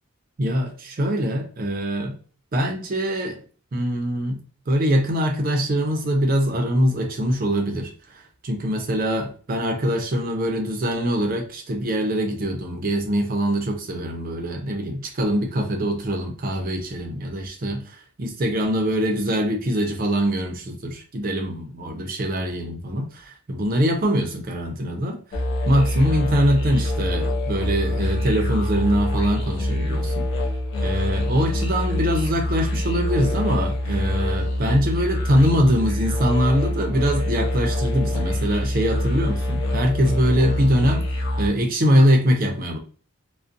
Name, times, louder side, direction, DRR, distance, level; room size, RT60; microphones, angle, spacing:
voice 1, 0.4-2.2 2.5-3.4 3.7-4.4 4.7-25.2 25.7-30.2 30.8-41.0 41.4-42.8, equal, 40° right, 0.5 m, -23 dB
sound 1, 25.3-41.5, left 1 dB, 55° left, 0.7 m, -25 dB
2.5 x 2.1 x 2.4 m
head